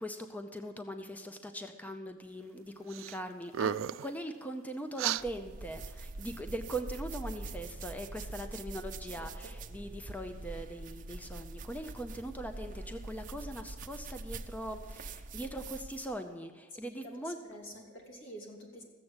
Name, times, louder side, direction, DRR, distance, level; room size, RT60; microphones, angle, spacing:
voice 1, 0.0-3.7 4.0-17.4, right 1 dB, 10° left, 7 dB, 0.6 m, -41 dB
sound 1, 2.9-3.2 3.5-4.1 5.0-5.2, right 9 dB, 80° right, 0.3 m, -33 dB
sound 2, 5.2-16.1, right 2 dB, 40° right, 0.7 m, -44 dB
voice 2, 16.8-18.8, equal, 75° left, 0 dB, 3.0 m, -48 dB
14.5 x 7.6 x 8.0 m, 1.5 s
head